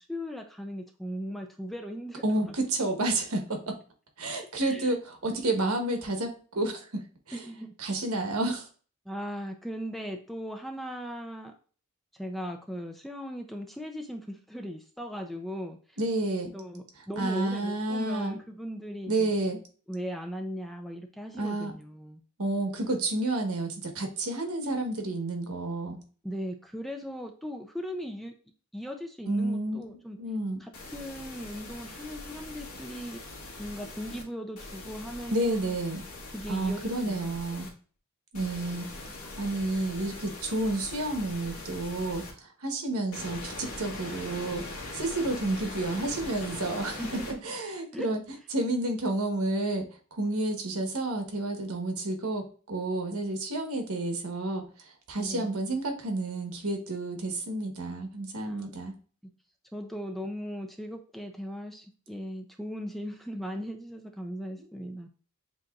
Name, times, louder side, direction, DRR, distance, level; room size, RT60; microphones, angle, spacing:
voice 1, 0.0-2.5 4.6-4.9 7.3-7.7 9.1-11.5 12.1-16.0 16.5-19.3 19.9-22.2 26.2-28.3 28.7-30.2 30.6-33.2 33.6-35.8 36.3-37.4 47.0-47.4 47.9-48.1 55.2-55.5 58.4-58.7 59.2-59.3 59.7-65.1, equal, ahead, 4 dB, 0.4 m, -38 dB
voice 2, 2.2-3.8 4.2-7.0 7.3-7.4 7.8-8.7 16.0-16.5 17.2-18.4 19.1-19.6 21.4-21.7 22.4-26.0 29.3-30.6 35.3-36.0 36.5-37.7 38.3-38.9 39.2-44.6 44.9-47.0 47.4-48.2 48.5-58.9, right 2 dB, 80° right, 4 dB, 1.2 m, -30 dB
sound 1, 30.7-34.2 34.6-37.7 38.3-42.3 43.1-47.3, left 2 dB, 85° left, 1.5 m, -42 dB
7.5 x 2.9 x 2.4 m, 0.39 s
head